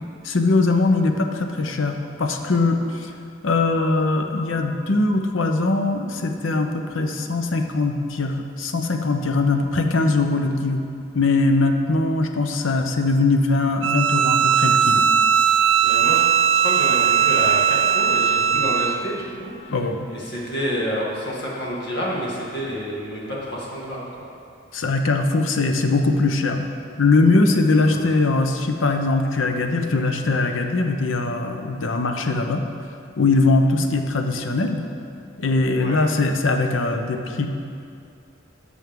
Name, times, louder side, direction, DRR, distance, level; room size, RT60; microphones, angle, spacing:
voice 1, 0.0-3.1 3.4-10.8 11.1-15.1 19.7-20.1 24.7-26.7 27.0-32.6 33.2-34.8 35.4-37.5, left 3 dB, 80° left, 5 dB, 0.7 m, -21 dB
Bowed string instrument, 13.8-19.0, right 8 dB, 75° right, 0.4 m, -18 dB
voice 2, 15.8-19.7 20.1-24.1 27.9-28.1 35.8-36.0, equal, 60° left, -5 dB, 1.9 m, -29 dB
11.5 x 6.3 x 3.7 m, 2.5 s
head